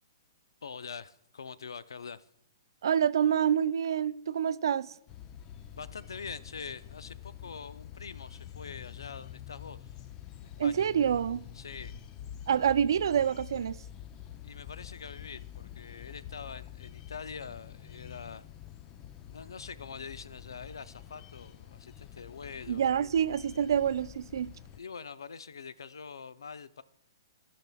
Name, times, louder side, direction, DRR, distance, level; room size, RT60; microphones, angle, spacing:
voice 1, 0.6-2.3 5.7-9.9 10.3-10.9 11.5-11.9 14.4-18.5 19.3-22.9 24.8-26.8, left 5 dB, 90° left, 0.4 m, -44 dB
voice 2, 2.8-5.0 10.6-11.4 12.5-13.8 22.7-24.5, right 8 dB, 70° right, 0.3 m, -27 dB
sound 1, 5.1-24.8, left 10 dB, 25° left, 0.5 m, -47 dB
14.0 x 5.8 x 2.3 m
hypercardioid pair, 140°, 2 cm